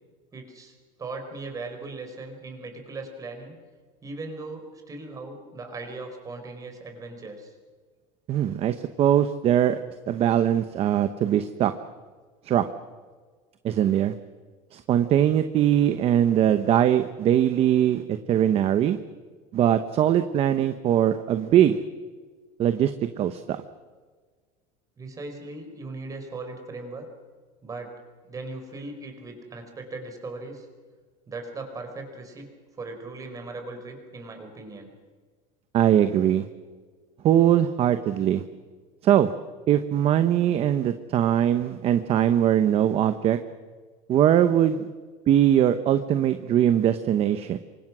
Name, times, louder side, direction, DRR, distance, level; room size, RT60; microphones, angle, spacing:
voice 1, 0.3-3.6 4.0-7.5 25.0-27.1 27.6-27.9 28.3-30.7 31.3-32.5 32.8-34.9, right 3 dB, 20° right, 5 dB, 4.9 m, -38 dB
voice 2, 8.3-9.8 10.1-11.7 12.4-12.7 13.6-14.1 14.7-19.0 19.5-21.8 22.6-23.6 35.7-36.4 37.2-38.4 39.0-39.3 39.7-43.4 44.1-44.9 45.3-47.6, right 10 dB, 35° right, 10 dB, 1.0 m, -21 dB
28.0 x 24.5 x 6.2 m, 1.5 s
cardioid pair, 160°, 17 cm